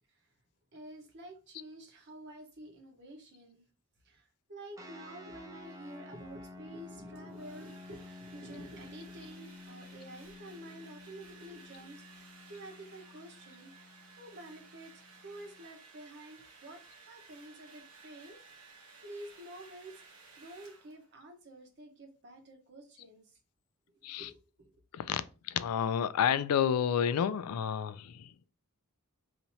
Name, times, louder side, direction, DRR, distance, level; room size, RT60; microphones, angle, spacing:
voice 1, 0.7-3.7 4.0-20.0 20.4-23.4 23.9-24.7, right 1 dB, 50° right, 1.0 m, -50 dB
sound 1, 4.8-15.7, left 2 dB, 15° right, 0.6 m, -52 dB
Domestic sounds home sounds, 7.2-21.2, right 4 dB, 90° right, 1.1 m, -56 dB
voice 2, 24.9-28.3, left 8 dB, 85° left, 0.3 m, -30 dB
2.9 x 2.7 x 4.3 m
head